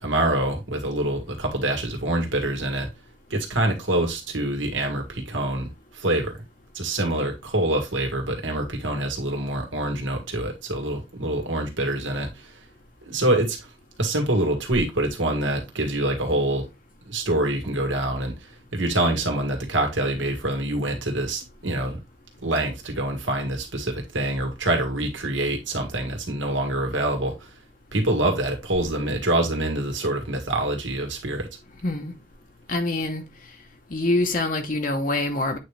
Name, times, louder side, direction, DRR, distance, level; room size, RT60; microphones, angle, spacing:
voice 1, 0.0-2.9 3.3-6.4 6.7-12.6 13.1-13.7 14.0-16.7 17.1-22.0 22.4-27.5 27.9-31.5, right 1 dB, 85° right, 2.0 m, -25 dB
voice 2, 31.8-32.1 32.7-33.2 33.9-35.6, left 2 dB, 45° left, 0.9 m, -25 dB
8.6 x 3.4 x 3.2 m
head